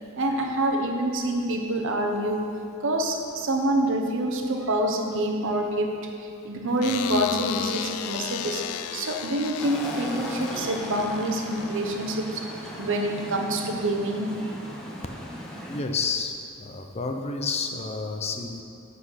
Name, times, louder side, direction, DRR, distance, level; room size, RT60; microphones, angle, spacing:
voice 1, 0.2-2.5 2.8-5.9 6.2-8.6 8.9-12.4 12.8-14.3, right 1 dB, 60° right, 2 dB, 0.8 m, -26 dB
sound 1, 6.8-12.1, left 10 dB, 85° left, 0.3 m, -35 dB
sound 2, 9.6-15.8, equal, 5° left, 0.9 m, -37 dB
voice 2, 15.7-18.6, left 4 dB, 30° left, 4 dB, 0.5 m, -30 dB
9.9 x 4.1 x 5.7 m, 2.5 s
head